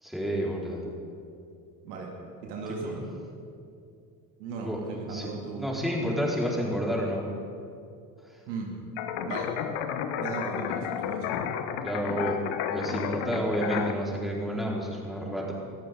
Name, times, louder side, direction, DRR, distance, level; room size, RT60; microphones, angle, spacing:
voice 1, 0.0-0.9 2.8-3.0 4.6-4.8 5.1-5.3 5.6-7.2 11.8-12.4 12.7-15.5, equal, ahead, -4 dB, 4.6 m, -30 dB
voice 2, 2.4-3.0 4.4-5.7 8.5-8.7 9.2-9.5 10.1-11.3, right 4 dB, 75° right, -1 dB, 2.5 m, -37 dB
sound 1, 9.0-13.9, left 8 dB, 65° left, 1.1 m, -32 dB
21.0 x 14.0 x 3.9 m, 2.5 s
hypercardioid pair, 60°, 48 cm